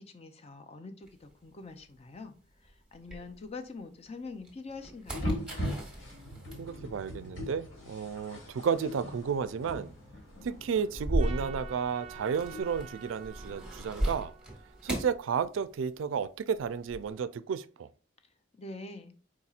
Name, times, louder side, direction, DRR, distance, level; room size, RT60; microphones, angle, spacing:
voice 1, 0.0-2.3 2.6-5.4 18.6-19.1, left 3 dB, 30° left, 0.5 m, -44 dB
sound 1, 1.1-3.8 4.3-16.1 16.3-17.1, right 1 dB, 5° right, 1.1 m, -39 dB
sound 2, 5.1-12.6, equal, 70° left, 2.5 m, -40 dB
voice 2, 6.6-9.9 10.4-14.3 14.8-17.9, right 6 dB, 70° right, 0.3 m, -32 dB
Trumpet, 11.2-15.6, right 7 dB, 30° right, 0.7 m, -49 dB
4.7 x 4.2 x 2.4 m
head